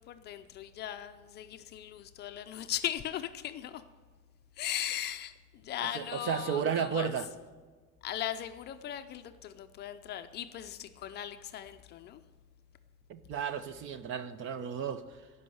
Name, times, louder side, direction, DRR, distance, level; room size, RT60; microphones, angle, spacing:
voice 1, 0.0-3.8 4.6-7.2 8.0-12.2, left 11 dB, 35° left, 9 dB, 0.5 m, -38 dB
voice 2, 5.9-7.3 13.1-15.0, right 7 dB, 40° right, 13 dB, 0.7 m, -33 dB
16.5 x 5.5 x 7.7 m, 1.4 s
cardioid pair, 165°, 31 cm